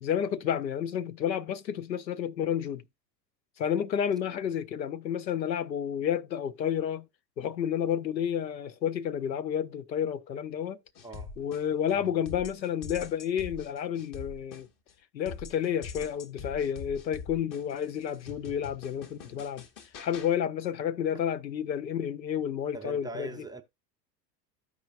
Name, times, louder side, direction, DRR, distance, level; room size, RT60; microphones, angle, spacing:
voice 1, 0.0-2.8 3.6-7.1 7.4-10.8 11.4-14.7 15.1-19.6 20.0-23.3, left 9 dB, 90° left, 0.6 m, -30 dB
sound 1, 11.0-11.9 12.3-14.9 15.3-20.3, left 5 dB, 40° left, 1.2 m, -44 dB
voice 2, 11.0-11.3 11.9-12.1 22.7-23.6, right 3 dB, 10° right, 0.4 m, -41 dB
14.0 x 4.7 x 2.5 m
figure-of-eight pair, 75°, 50 cm